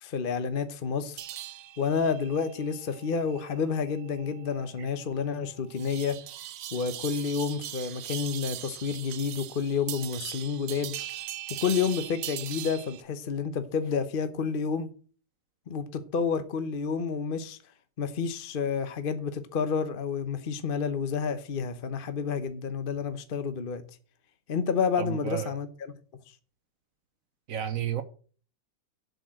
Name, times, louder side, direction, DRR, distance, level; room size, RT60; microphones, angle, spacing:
voice 1, 0.0-1.2 1.8-6.2 6.7-11.0 11.6-14.9 15.7-17.6 18.0-23.8 24.5-25.9, left 6 dB, 45° left, 0.7 m, -30 dB
sound 1, 1.2-13.0, right 13 dB, 80° right, 1.4 m, -40 dB
voice 2, 25.0-25.6 27.5-28.0, right 9 dB, 55° right, 1.1 m, -31 dB
8.0 x 6.4 x 7.6 m
omnidirectional pair, 1.9 m